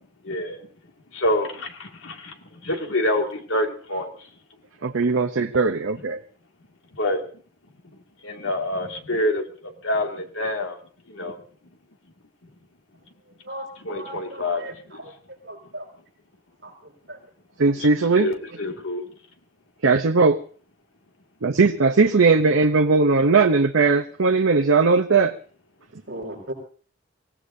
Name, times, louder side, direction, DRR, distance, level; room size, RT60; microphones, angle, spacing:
voice 1, 0.2-0.6 1.1-2.3 2.6-4.1 6.9-7.2 8.2-9.4 9.8-10.8 11.1-11.4 13.8-15.0 17.8-17.9 18.2-19.0, left 1 dB, 80° left, 3 dB, 2.3 m, -26 dB
voice 2, 4.8-6.2 17.6-18.3 19.8-20.4 21.4-25.3, right 4 dB, 85° right, 5 dB, 0.8 m, -18 dB
voice 3, 14.0-15.1 15.5-15.9 16.6-16.7 17.1-17.2 26.1-26.5, right 1 dB, 55° right, -1 dB, 5.7 m, -36 dB
24.5 x 17.0 x 2.7 m, 0.42 s
head